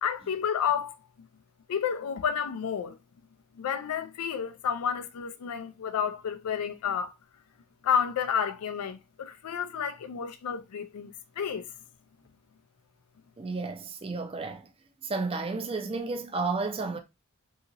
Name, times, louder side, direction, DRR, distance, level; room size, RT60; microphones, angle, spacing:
voice 1, 0.0-1.0 1.7-3.0 3.6-7.1 7.8-11.7, left 7 dB, 80° left, 0.4 m, -30 dB
voice 2, 13.4-14.7 15.0-17.0, right 3 dB, 25° right, 0.5 m, -32 dB
2.8 x 2.8 x 2.5 m
head